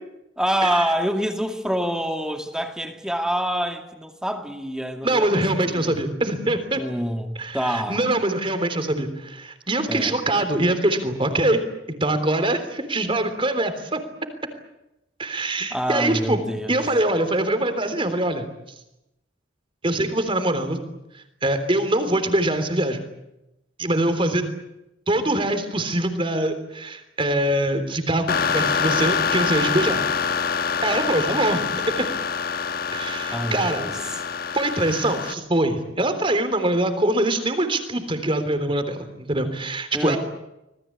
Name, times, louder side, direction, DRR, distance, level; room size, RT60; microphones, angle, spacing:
voice 1, 0.4-5.4 5.7-6.0 6.7-8.0 9.9-10.1 15.7-16.8 33.3-34.2 39.9-40.2, equal, 5° right, 5 dB, 2.5 m, -26 dB
voice 2, 5.0-6.8 7.4-11.6 11.9-14.0 15.2-16.4 16.7-18.5 19.8-20.8 21.4-23.0 23.8-24.4 25.1-30.0 30.8-31.7 32.0-32.1 32.9-33.8 34.5-40.2, right 1 dB, 25° right, 9 dB, 3.4 m, -23 dB
sound 1, 28.3-35.3, left 6 dB, 50° left, 1.3 m, -25 dB
26.0 x 20.0 x 8.8 m, 0.89 s
head